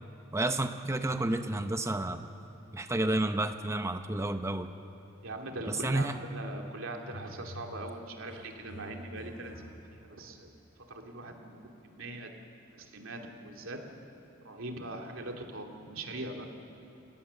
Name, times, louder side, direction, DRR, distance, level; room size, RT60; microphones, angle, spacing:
voice 1, 0.3-2.3 2.7-4.7 5.7-6.2, right 2 dB, 15° right, 8 dB, 0.7 m, -30 dB
voice 2, 5.2-10.5 10.9-11.5 11.8-12.3 12.7-13.8 14.4-16.5, right 2 dB, 85° right, 2 dB, 2.7 m, -41 dB
sound 1, 6.8-6.9 7.0-10.1, equal, 60° left, 6.1 m, -48 dB
30.0 x 17.0 x 7.0 m, 2.7 s
head